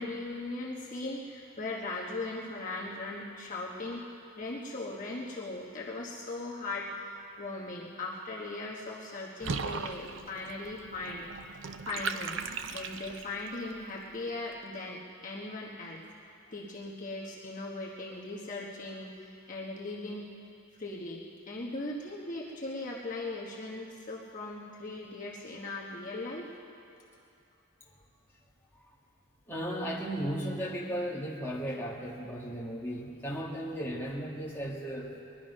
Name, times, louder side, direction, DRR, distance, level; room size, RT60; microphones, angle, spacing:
voice 1, 0.0-4.0 4.3-11.3 11.5-12.4 12.7-16.0 16.5-20.3 20.8-26.5, left 2 dB, 40° left, -3 dB, 1.2 m, -39 dB
Water / Bathtub (filling or washing), 9.4-13.5, right 5 dB, 60° right, 0.6 m, -38 dB
voice 2, 29.5-35.2, equal, 10° left, -5 dB, 1.8 m, -35 dB
20.5 x 11.5 x 5.4 m, 2.6 s
head